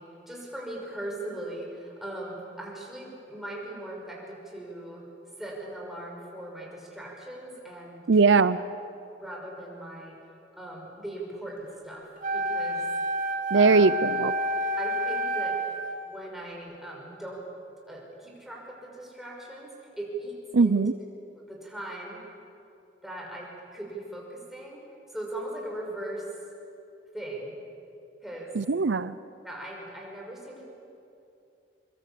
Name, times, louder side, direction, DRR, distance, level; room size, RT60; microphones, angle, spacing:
voice 1, 0.0-5.1 5.4-8.4 9.1-10.2 10.5-12.8 13.5-13.9 14.8-15.6 16.0-17.4 17.9-20.8 21.5-22.2 23.0-24.8 25.1-26.3 27.1-27.6 28.2-28.5 29.4-30.6, right 1 dB, ahead, -2 dB, 5.9 m, -39 dB
voice 2, 8.1-8.6 13.5-14.3 20.5-20.9 28.5-29.1, right 4 dB, 75° right, 15 dB, 0.6 m, -20 dB
Wind instrument woodwind instrument, 12.2-16.0, right 1 dB, 50° right, 2.2 m, -29 dB
24.0 x 24.0 x 8.6 m, 2.6 s
head